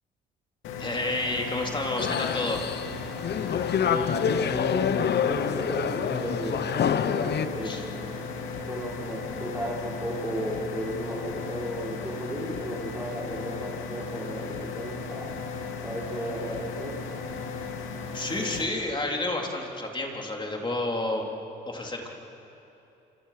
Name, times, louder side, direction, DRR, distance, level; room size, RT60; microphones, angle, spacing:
sound 1, 0.6-18.6, left 4 dB, 85° left, 2.7 m, -36 dB
voice 1, 0.8-2.6 7.6-7.8 18.1-21.3 21.7-22.1, left 2 dB, 25° left, 1 dB, 3.7 m, -30 dB
sound 2, 2.0-7.5, left 8 dB, 55° left, 1.0 m, -27 dB
voice 2, 3.8-8.1 8.7-14.4 14.7-15.3 15.8-16.9, equal, 10° right, -5 dB, 6.0 m, -34 dB
27.5 x 26.5 x 6.0 m, 2.9 s
cardioid pair, 90°, 20 cm